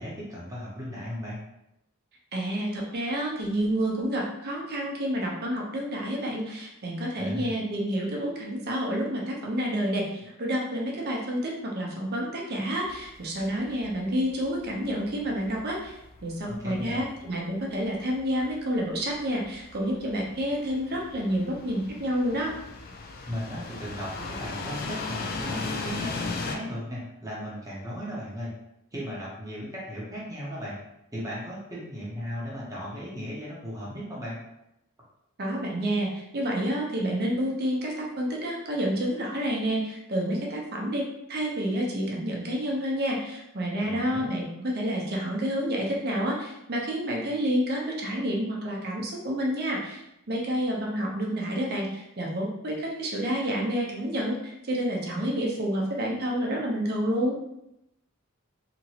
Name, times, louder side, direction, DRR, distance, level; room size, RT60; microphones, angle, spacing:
voice 1, 0.0-1.4 7.2-7.5 16.4-17.1 23.2-28.5 28.9-30.8 31.1-34.4 43.8-44.3, equal, 15° right, -6 dB, 0.7 m, -36 dB
voice 2, 2.3-10.1 10.4-15.9 16.2-22.5 35.4-41.0 41.3-50.0 50.3-57.4, equal, 50° right, -1 dB, 0.7 m, -29 dB
sound 1, 12.8-26.6, left 3 dB, 45° left, 0.4 m, -38 dB
2.9 x 2.5 x 2.8 m, 0.84 s
head